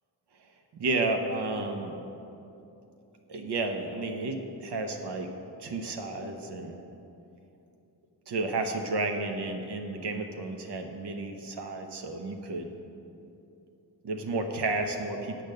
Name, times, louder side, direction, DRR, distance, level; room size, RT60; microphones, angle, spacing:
voice 1, 0.7-2.0 3.3-5.3 5.6-6.8 8.3-12.7 14.0-15.4, right 2 dB, 75° right, 4 dB, 0.9 m, -32 dB
8.7 x 7.8 x 6.6 m, 2.8 s
wide cardioid pair, 170°, 41 cm